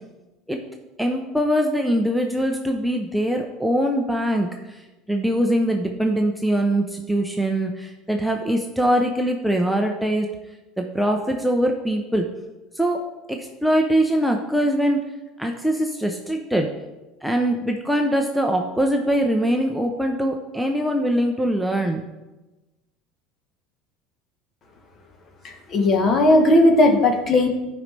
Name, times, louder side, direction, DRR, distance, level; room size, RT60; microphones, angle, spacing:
voice 1, 1.0-4.8 5.1-10.3 10.8-12.3 12.7-13.0 13.3-15.0 15.4-16.7 17.2-22.0, equal, ahead, 2 dB, 0.6 m, -22 dB
voice 2, 25.4-27.5, left 1 dB, 35° left, 4 dB, 1.2 m, -17 dB
11.0 x 5.2 x 3.3 m, 1.1 s
supercardioid pair, 120°, 0 cm